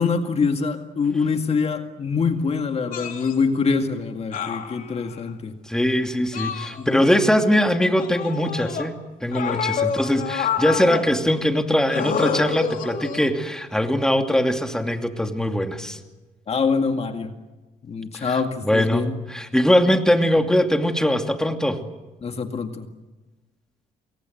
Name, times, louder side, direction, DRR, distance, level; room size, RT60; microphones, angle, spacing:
voice 1, 0.0-5.6 6.8-7.1 16.5-17.3 17.9-19.2 22.2-22.9, left 5 dB, 40° left, 6 dB, 2.1 m, -24 dB
sound 1, 2.9-3.3 4.3-5.2 6.3-7.2 8.0-8.9 9.3-11.1 11.9-13.4 14.5-14.7, left 7 dB, 60° left, 3.0 m, -28 dB
voice 2, 5.7-8.9 9.2-16.0 18.1-18.3 18.6-21.9, equal, 5° left, 5 dB, 2.6 m, -21 dB
28.5 x 22.5 x 7.9 m, 1.1 s
cardioid pair, 90°, 16 cm